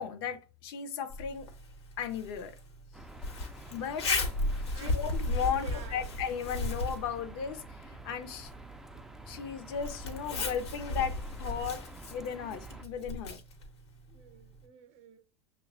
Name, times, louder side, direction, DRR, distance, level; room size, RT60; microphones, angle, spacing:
voice 1, 0.0-1.5 2.0-2.5 3.7-4.2 4.7-8.5 9.3-13.4, left 7 dB, 60° left, 0.6 m, -36 dB
Zipper (clothing), 1.1-14.7, left 2 dB, 75° left, 0.9 m, -37 dB
sound 1, 2.9-12.9, right 2 dB, 5° right, 0.3 m, -49 dB
voice 2, 4.5-5.0 5.5-6.1 8.9-9.0 14.1-15.2, right 7 dB, 45° right, 0.7 m, -49 dB
6.3 x 2.2 x 2.4 m
hypercardioid pair, 85°, 14 cm